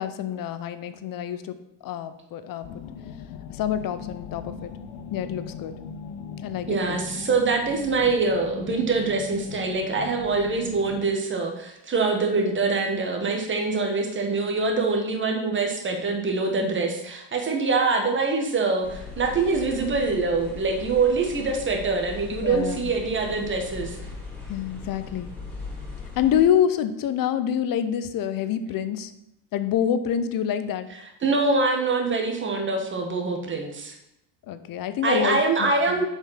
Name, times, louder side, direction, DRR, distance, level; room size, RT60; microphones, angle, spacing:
voice 1, 0.0-1.6 1.8-2.7 3.5-4.7 5.1-5.7 6.4-7.0 22.4-22.9 24.5-25.3 26.2-29.1 29.5-30.9 34.5-36.0, left 9 dB, 45° left, 11 dB, 0.7 m, -26 dB
sound 1, 2.6-11.1, left 7 dB, 80° left, 1.0 m, -39 dB
voice 2, 6.7-24.0 31.2-34.0 35.0-36.0, right 3 dB, 25° right, 3 dB, 1.5 m, -24 dB
sound 2, 18.8-26.4, left 4 dB, 5° left, 3.1 m, -39 dB
7.2 x 5.3 x 5.7 m, 0.85 s
cardioid pair, 130°, 47 cm